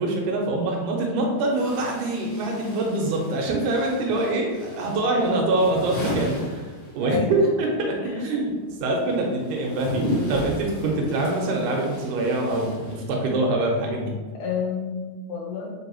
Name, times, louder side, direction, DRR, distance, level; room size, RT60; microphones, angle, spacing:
voice 1, 0.0-6.7 7.0-8.5 8.8-14.2, right 2 dB, 90° right, 0 dB, 2.2 m, -24 dB
sound 1, 0.6-0.7 1.5-7.3 7.6-13.4, left 1 dB, 50° left, 0.6 m, -34 dB
voice 2, 7.0-7.5 8.0-8.4 14.4-15.7, left 5 dB, 80° left, -3 dB, 2.0 m, -30 dB
5.0 x 2.7 x 2.8 m, 1.3 s
omnidirectional pair, 3.4 m